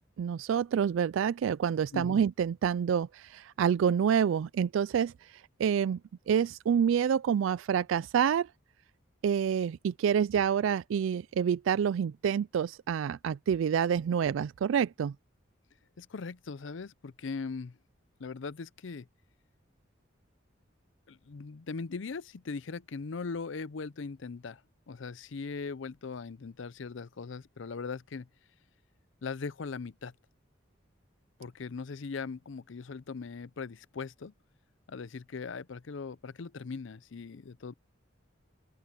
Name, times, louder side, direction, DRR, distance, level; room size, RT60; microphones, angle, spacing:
voice 1, 0.2-5.1 5.6-6.0 6.3-8.5 9.2-15.1, right 8 dB, 75° right, 0.3 m, -27 dB
voice 2, 16.0-17.8 18.2-19.1 21.1-24.6 24.9-28.3 29.2-30.1 31.4-34.3 34.9-37.7, left 4 dB, 70° left, 0.6 m, -39 dB
open air
head